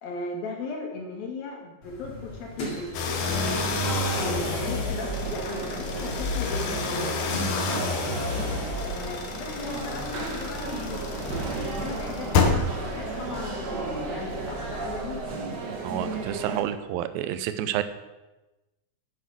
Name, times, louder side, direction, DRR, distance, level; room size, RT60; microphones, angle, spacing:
voice 1, 0.0-2.9 3.4-3.9 4.2-7.9 8.8-11.1 11.6-12.7 12.9-15.3, left 2 dB, 80° left, 1 dB, 3.8 m, -37 dB
sound 1, 1.8-16.6, left 1 dB, 40° left, 2.6 m, -42 dB
sound 2, 2.9-15.3, left 4 dB, 65° left, 2.4 m, -30 dB
sound 3, 3.0-16.6, right 3 dB, 55° right, 1.1 m, -34 dB
voice 2, 15.8-17.8, right 11 dB, 85° right, 12 dB, 2.5 m, -29 dB
9.4 x 8.1 x 6.2 m, 1.1 s
omnidirectional pair, 4.1 m